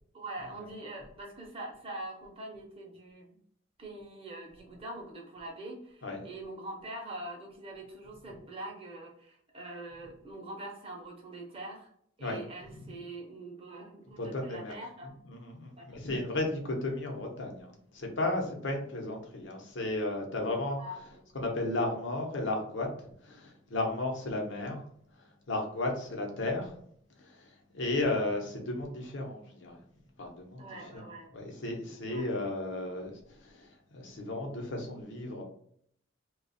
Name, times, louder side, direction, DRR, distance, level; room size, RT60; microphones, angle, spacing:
voice 1, 0.1-3.4 3.8-11.9 12.2-15.1 15.8-16.0 20.8-21.2 30.6-31.3 32.1-32.3, right 1 dB, 30° right, 0 dB, 0.7 m, -44 dB
voice 2, 14.2-14.7 15.3-20.8 21.3-24.8 25.2-26.8 27.2-29.8 30.2-31.0 31.3-35.4, left 2 dB, 65° left, 1 dB, 0.9 m, -34 dB
3.0 x 2.3 x 4.1 m, 0.67 s
head